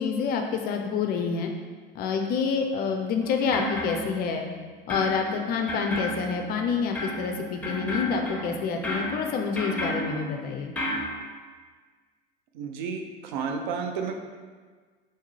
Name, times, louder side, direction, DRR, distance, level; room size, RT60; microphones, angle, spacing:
voice 1, 0.0-1.5 1.9-4.4 4.9-10.7, left 5 dB, 30° left, 3 dB, 0.4 m, -27 dB
sound 1, 3.2-4.6 4.9-11.0, equal, 5° left, 1.0 m, -33 dB
voice 2, 12.5-14.2, right 5 dB, 55° right, 4 dB, 0.6 m, -31 dB
3.6 x 3.2 x 4.1 m, 1.5 s
figure-of-eight pair, 75°, 29 cm